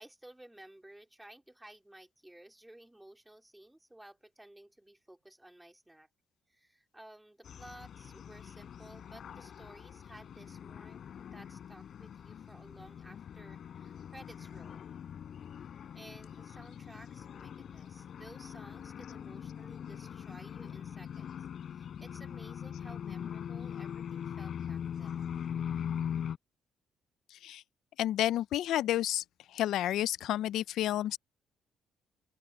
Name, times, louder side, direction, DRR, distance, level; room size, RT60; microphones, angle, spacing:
voice 1, 0.0-6.1 6.5-14.8 15.9-25.4, right 1 dB, 5° right, 4.1 m, -55 dB
sound 1, 7.4-26.4, left 8 dB, 55° left, 5.1 m, -42 dB
voice 2, 28.0-29.2 29.5-31.2, left 13 dB, 80° left, 0.4 m, -30 dB
open air
cardioid pair, 130°, 0 cm